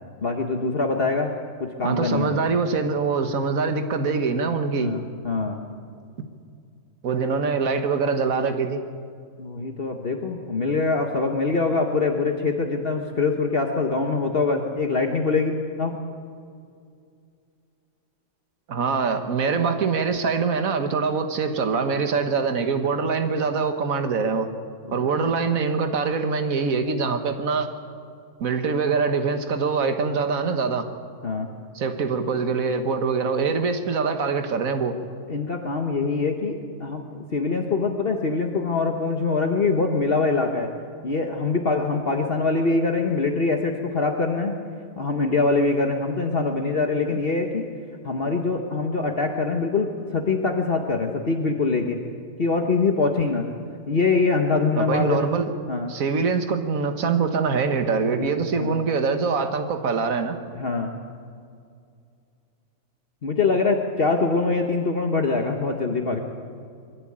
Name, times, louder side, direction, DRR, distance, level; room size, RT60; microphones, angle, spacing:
voice 1, 0.2-1.3 1.6-2.4 4.8-5.6 9.4-16.0 24.9-25.2 31.2-31.5 35.3-40.7 41.0-44.6 45.0-47.6 48.0-52.0 52.4-53.5 53.9-55.4 55.7-55.9 58.2-58.3 58.6-58.7 60.5-60.9 63.2-66.2, left 3 dB, 45° left, 3 dB, 1.5 m, -24 dB
voice 2, 1.8-4.9 7.0-8.8 18.7-24.5 24.9-27.7 28.4-30.9 31.7-35.0 54.8-55.5 55.9-60.4, right 5 dB, 80° right, 7 dB, 1.7 m, -24 dB
22.0 x 16.0 x 8.8 m, 2.4 s
omnidirectional pair, 1.4 m